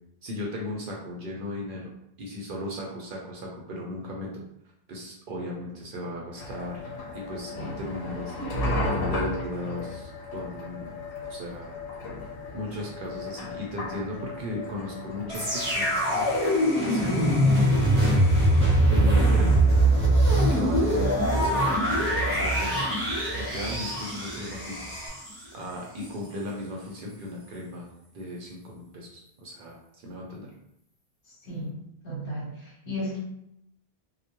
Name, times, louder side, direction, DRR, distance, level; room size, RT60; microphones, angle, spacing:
voice 1, 0.2-1.9 2.2-4.4 4.9-6.8 7.1-8.4 8.8-10.9 11.2-11.8 12.5-16.3 16.8-19.6 20.5-24.9 25.5-27.9 28.1-30.5, left 1 dB, 60° right, -2 dB, 0.6 m, -36 dB
sound 1, 6.4-16.4, left 2 dB, 85° left, 0.8 m, -34 dB
sound 2, 15.3-25.1, left 1 dB, 45° left, 0.4 m, -41 dB
sound 3, 15.3-25.4 26.0-26.1, right 1 dB, 15° right, 0.7 m, -23 dB
voice 2, 32.0-32.5 32.8-33.2, equal, 65° left, -5 dB, 1.1 m, -32 dB
2.1 x 2.1 x 2.8 m, 0.75 s
omnidirectional pair, 1.1 m